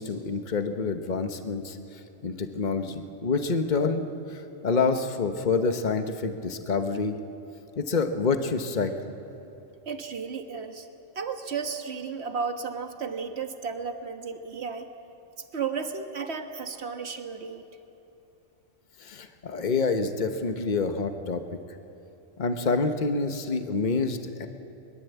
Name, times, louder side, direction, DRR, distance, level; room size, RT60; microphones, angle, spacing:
voice 1, 0.0-7.2 7.8-8.9 19.0-21.4 22.4-24.5, left 4 dB, 40° left, 6 dB, 1.3 m, -27 dB
voice 2, 9.8-10.9 11.1-14.9 15.5-17.6, right 5 dB, 60° right, 6 dB, 1.7 m, -33 dB
23.0 x 22.0 x 8.3 m, 3.0 s
omnidirectional pair, 1.2 m